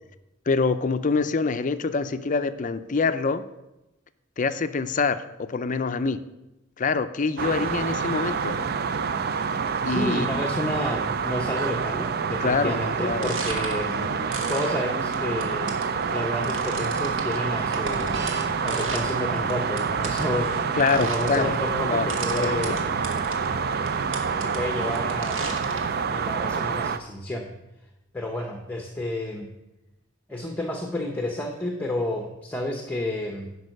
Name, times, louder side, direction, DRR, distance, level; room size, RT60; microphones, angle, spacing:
voice 1, 0.5-3.5 4.4-6.2 6.8-8.6 9.8-10.9 12.4-13.3 20.7-21.6 21.8-22.1 22.3-22.8, left 4 dB, 40° left, 11 dB, 0.4 m, -26 dB
sound 1, 7.4-27.0, right 5 dB, 50° right, 0.4 m, -27 dB
voice 2, 9.8-15.8 16.1-22.8 24.4-25.4 26.1-27.5 28.1-29.5 30.3-33.5, left 1 dB, 10° left, 3 dB, 0.8 m, -31 dB
sound 2, 13.0-26.0, right 2 dB, 65° right, 1.5 m, -37 dB
11.0 x 5.3 x 6.4 m, 0.97 s
head